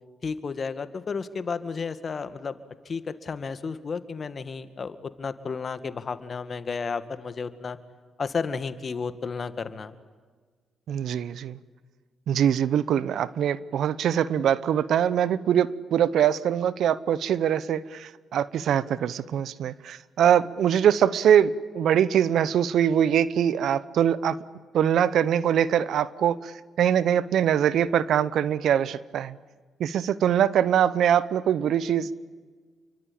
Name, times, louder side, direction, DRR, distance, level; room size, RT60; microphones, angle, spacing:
voice 1, 0.2-2.6 2.9-7.8 8.2-10.0, left 5 dB, 50° left, 11 dB, 1.9 m, -32 dB
voice 2, 10.9-11.6 12.3-24.4 24.7-26.5 26.8-29.4 29.8-32.1, right 9 dB, 70° right, 18 dB, 0.9 m, -23 dB
28.5 x 23.5 x 8.8 m, 1.5 s
hypercardioid pair, 50°, 0 cm